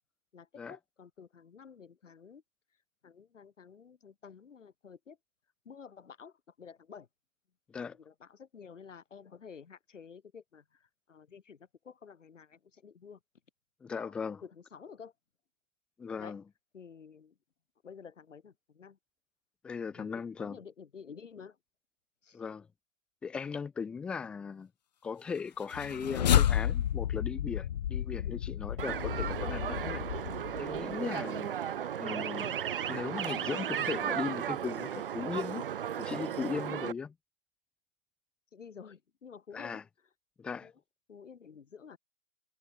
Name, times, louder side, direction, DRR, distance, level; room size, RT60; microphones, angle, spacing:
voice 1, 0.3-2.4 3.0-5.2 5.6-7.1 7.9-13.2 13.9-14.1 14.4-15.1 16.2-16.4 16.7-17.4 17.8-19.0 19.9-21.6 22.2-22.4 28.2-28.4 38.5-39.8 40.5-40.7 41.1-42.0, left 6 dB, 80° left, 5.9 m, -51 dB
voice 2, 13.8-14.4 16.0-16.4 19.6-20.6 22.3-22.7 23.2-24.7 25.0-30.1 30.6-31.5 32.0-32.6 32.9-35.7 36.0-37.1 39.5-39.8 40.4-40.7, left 6 dB, 5° left, 0.8 m, -38 dB
sound 1, 25.6-30.9, left 10 dB, 35° left, 1.2 m, -31 dB
sound 2, 28.8-36.9, right 9 dB, 45° right, 1.1 m, -35 dB
hypercardioid pair, 170°, 37 cm